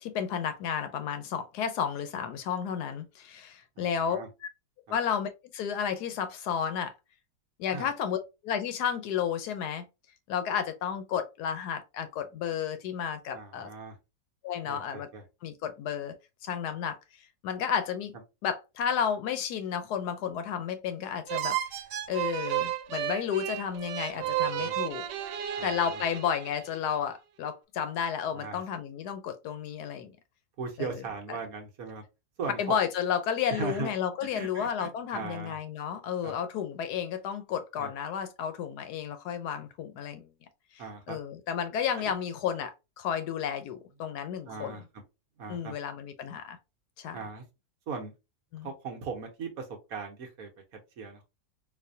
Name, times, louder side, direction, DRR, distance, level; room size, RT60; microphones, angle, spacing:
voice 1, 0.0-4.5 4.9-6.9 7.6-8.2 8.4-9.8 10.3-13.7 14.4-15.1 15.4-16.1 16.4-17.0 17.4-18.1 18.4-21.6 22.1-25.1 25.6-30.1 30.8-31.0 31.3-31.4 32.6-40.3 41.1-44.8 45.5-46.6 47.0-47.2 48.5-48.7, left 8 dB, 75° left, 1.1 m, -32 dB
voice 2, 3.8-4.3 4.9-5.0 7.7-7.9 13.3-14.0 14.6-15.2 24.2-24.8 25.6-26.0 28.3-28.6 30.6-32.0 32.4-32.8 33.5-33.9 34.3-35.6 36.2-36.3 37.8-37.9 40.8-41.2 42.0-42.1 44.4-44.8 45.4-45.7 47.1-47.4 47.9-48.1 48.6-51.3, right 5 dB, 60° right, 1.2 m, -39 dB
sound 1, 21.3-26.8, right 12 dB, 90° right, 1.2 m, -33 dB
4.1 x 2.6 x 2.6 m
omnidirectional pair, 1.8 m